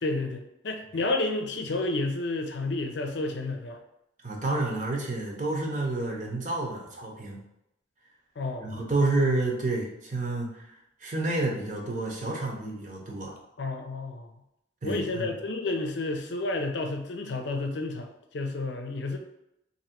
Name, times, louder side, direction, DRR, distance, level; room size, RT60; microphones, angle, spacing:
voice 1, 0.0-3.8 8.4-8.7 13.6-14.3 14.8-19.2, left 2 dB, 75° left, 4 dB, 0.6 m, -31 dB
voice 2, 4.2-7.4 8.6-10.7 11.0-13.3 14.8-15.3, right 2 dB, 45° right, -1 dB, 0.7 m, -29 dB
2.9 x 2.7 x 4.4 m, 0.84 s
head